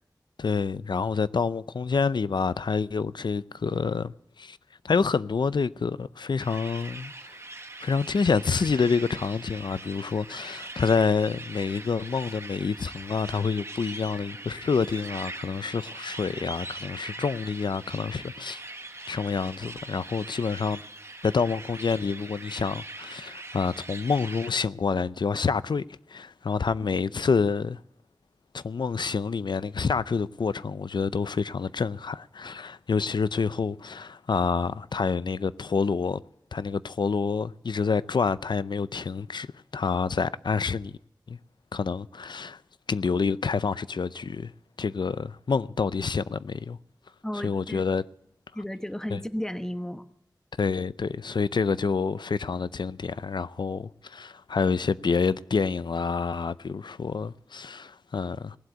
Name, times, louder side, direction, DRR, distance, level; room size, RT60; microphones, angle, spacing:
voice 1, 0.4-4.6 4.8-7.1 7.8-18.6 19.1-20.8 21.2-25.8 26.1-27.8 28.5-36.2 36.5-39.5 39.7-41.0 41.3-41.4 41.7-42.6 42.9-44.5 44.8-46.8 47.4-48.0 49.1-49.2 50.6-58.6, left 5 dB, 75° left, 0.5 m, -27 dB
sound 1, 6.4-24.5, right 2 dB, 35° right, 1.2 m, -41 dB
voice 2, 47.2-47.8 48.5-50.0, left 1 dB, 5° left, 1.0 m, -33 dB
19.0 x 7.9 x 9.3 m
wide cardioid pair, 60°, 8 cm